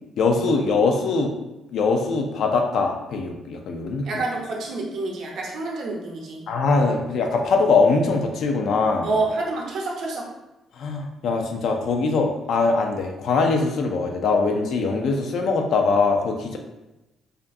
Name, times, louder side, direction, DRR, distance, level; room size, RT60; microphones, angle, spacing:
voice 1, 0.2-1.3 1.7-4.2 6.5-9.1 10.8-16.6, left 4 dB, 70° left, 3 dB, 0.3 m, -22 dB
voice 2, 4.0-6.4 9.0-10.3, right 3 dB, 75° right, -3 dB, 0.6 m, -28 dB
2.4 x 2.2 x 2.5 m, 0.98 s
cardioid pair, 90°, 0 cm